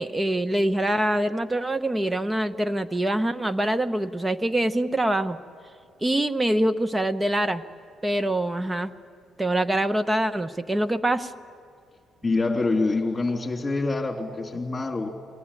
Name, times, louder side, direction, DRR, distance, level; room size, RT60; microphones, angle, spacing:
voice 1, 0.0-5.4 6.0-7.6 8.0-8.9 9.4-11.3, right 1 dB, 15° right, 11 dB, 1.0 m, -24 dB
voice 2, 12.2-15.1, left 3 dB, 25° left, 3 dB, 2.9 m, -25 dB
24.0 x 17.0 x 9.8 m, 2.3 s
cardioid pair, 90°, 0 cm